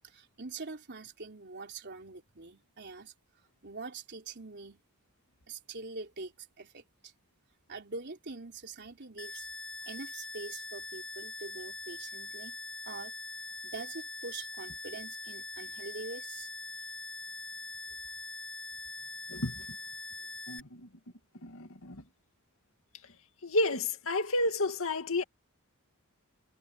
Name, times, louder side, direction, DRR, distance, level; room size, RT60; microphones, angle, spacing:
voice 1, 0.0-3.1 3.6-4.8 5.5-7.1 7.7-9.5 9.9-12.6 12.8-13.1 13.6-16.5, right 3 dB, 50° right, 3.9 m, -44 dB
sound 1, 9.2-20.6, left 2 dB, 5° left, 1.9 m, -43 dB
voice 2, 19.3-19.6 20.5-20.9 21.4-22.0 23.4-25.2, left 2 dB, 65° left, 2.4 m, -31 dB
head